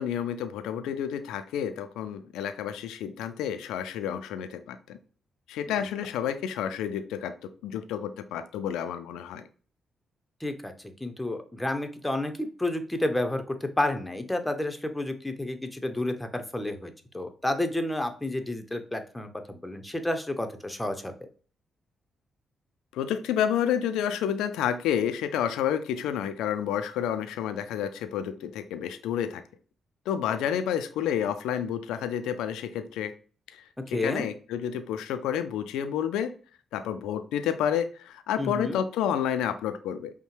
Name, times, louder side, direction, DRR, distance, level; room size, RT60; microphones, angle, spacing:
voice 1, 0.0-5.0 5.5-9.4 22.9-29.4 30.1-33.1 33.5-36.3 36.7-40.1, left 9 dB, 80° left, 10 dB, 0.3 m, -30 dB
voice 2, 10.4-21.1 33.9-34.3 38.4-38.8, left 1 dB, 10° left, 7 dB, 0.8 m, -30 dB
5.3 x 2.1 x 3.2 m, 0.40 s
hypercardioid pair, 45°, 0 cm